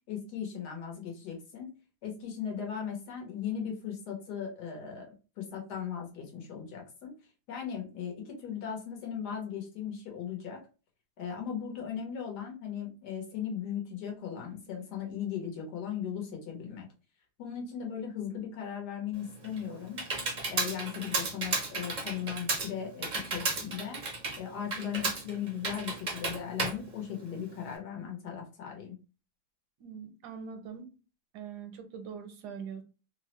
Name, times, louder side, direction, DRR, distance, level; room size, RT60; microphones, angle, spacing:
voice 1, 0.1-1.7 2.0-7.1 7.5-10.6 11.2-16.9 17.4-20.0 20.5-24.0 24.4-29.0, left 8 dB, 85° left, 1 dB, 1.5 m, -38 dB
Computer keyboard, 19.2-27.7, right 3 dB, 60° right, 0.4 m, -34 dB
voice 2, 29.8-30.9 31.3-32.8, right 7 dB, 80° right, 7 dB, 1.2 m, -42 dB
3.4 x 2.0 x 3.0 m, 0.33 s
omnidirectional pair, 1.7 m